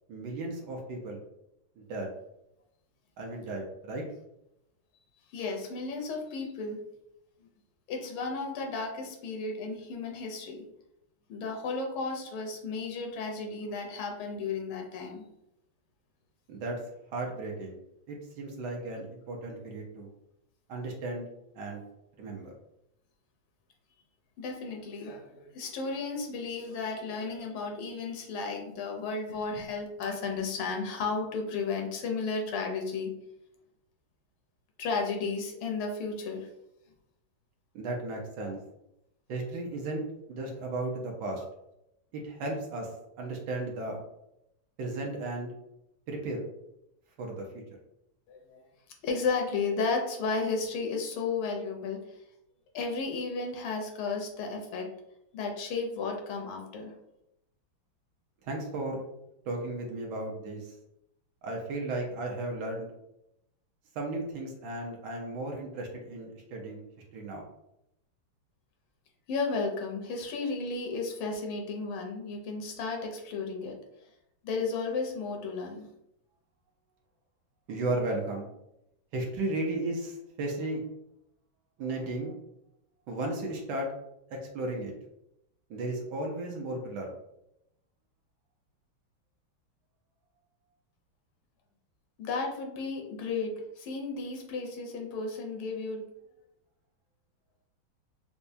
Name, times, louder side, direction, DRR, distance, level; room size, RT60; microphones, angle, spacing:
voice 1, 0.1-1.2 1.8-2.1 3.2-4.0 16.5-16.8 17.1-17.8 18.1-20.1 20.7-21.3 21.5-21.8 22.2-22.5 37.7-38.6 39.3-41.4 42.1-42.9 43.2-44.0 44.8-45.5 46.1-46.4 47.2-47.6 58.5-59.0 59.5-60.8 61.4-62.9 63.9-66.8 67.1-67.4 77.7-78.5 79.1-80.8 81.8-82.3 83.1-83.9 84.3-84.9 85.7-87.1, right 2 dB, 70° right, 0 dB, 1.1 m, -35 dB
voice 2, 5.3-6.8 7.4-7.5 7.9-10.6 11.3-15.2 24.4-33.1 34.8-36.5 48.3-48.6 49.0-52.2 52.7-54.9 55.3-56.9 69.3-73.7 74.4-75.9 92.2-96.0, left 4 dB, 85° left, 2 dB, 1.6 m, -33 dB
4.4 x 2.1 x 2.6 m, 0.82 s
omnidirectional pair, 2.2 m